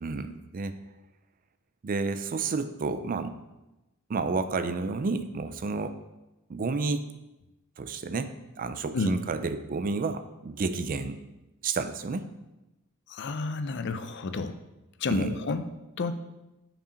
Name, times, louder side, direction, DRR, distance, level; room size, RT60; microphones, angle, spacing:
voice 1, 0.0-0.7 1.8-3.3 4.1-6.0 6.5-7.1 7.8-11.2 11.6-12.3 15.1-15.3, right 4 dB, 40° right, 10 dB, 0.4 m, -31 dB
voice 2, 13.1-14.6 15.0-15.7 16.0-16.1, left 3 dB, 55° left, 10 dB, 0.5 m, -30 dB
5.6 x 4.9 x 5.0 m, 0.99 s
head